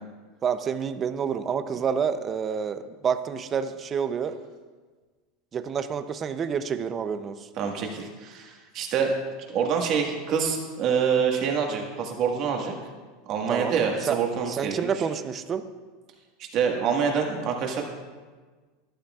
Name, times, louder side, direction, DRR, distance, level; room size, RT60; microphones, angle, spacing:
voice 1, 0.4-4.3 5.5-7.5 13.5-13.7 14.0-15.6, right 7 dB, 25° right, 10 dB, 0.5 m, -28 dB
voice 2, 7.6-9.1 9.5-12.7 13.3-14.9 16.4-17.8, right 6 dB, 40° right, 2 dB, 1.6 m, -26 dB
12.5 x 11.5 x 2.4 m, 1.4 s
supercardioid pair, 145°, 0 cm